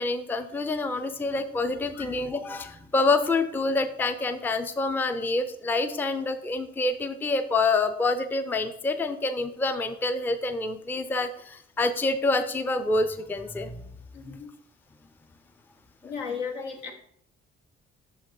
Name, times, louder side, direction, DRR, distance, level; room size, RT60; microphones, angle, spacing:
voice 1, 0.0-13.8 14.2-14.4 16.0-16.1, left 3 dB, 5° left, 9 dB, 0.4 m, -27 dB
voice 2, 14.1-14.5 16.0-16.9, left 6 dB, 80° left, 3 dB, 0.9 m, -35 dB
6.1 x 5.6 x 3.0 m, 0.68 s
figure-of-eight pair, 45°, 36 cm